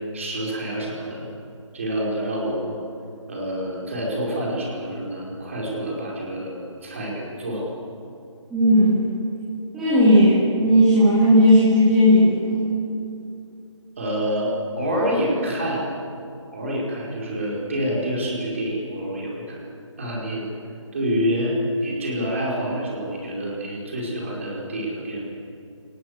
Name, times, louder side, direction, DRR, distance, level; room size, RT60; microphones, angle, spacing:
voice 1, 0.1-1.3 1.7-2.7 3.3-7.7 14.0-15.9 16.5-19.6 20.0-20.5 20.9-25.2, equal, 25° right, -3 dB, 4.9 m, -27 dB
voice 2, 8.5-9.1 9.7-12.7, equal, 5° right, -14 dB, 2.2 m, -16 dB
28.0 x 19.5 x 8.2 m, 2.6 s
figure-of-eight pair, 175°, 16 cm